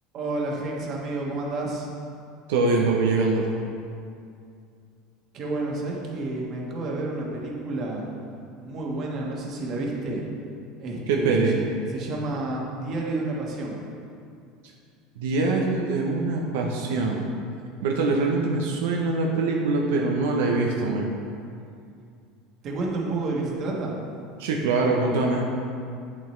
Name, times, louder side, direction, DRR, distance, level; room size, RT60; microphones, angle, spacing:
voice 1, 0.1-1.9 5.3-8.1 8.6-10.2 10.8-11.6 11.9-13.8 22.6-23.9, right 2 dB, 40° right, -2 dB, 1.5 m, -30 dB
voice 2, 2.5-3.4 11.1-11.6 15.2-17.2 17.8-21.2 24.4-25.4, right 3 dB, 90° right, 0 dB, 0.8 m, -23 dB
8.0 x 7.6 x 3.2 m, 2.4 s
supercardioid pair, 140°, 0 cm